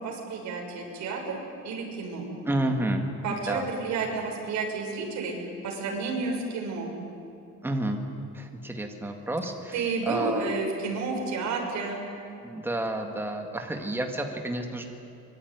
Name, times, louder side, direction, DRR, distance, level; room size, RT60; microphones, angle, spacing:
voice 1, 0.0-1.4 1.6-2.3 3.2-5.3 5.6-6.9 9.7-12.0, right 4 dB, 70° right, 1 dB, 6.4 m, -31 dB
voice 2, 2.4-3.7 3.9-4.0 7.6-8.0 8.3-10.5 12.4-14.8, right 1 dB, 5° right, 3 dB, 2.0 m, -30 dB
25.0 x 22.5 x 9.6 m, 2.7 s
cardioid pair, 170°, 29 cm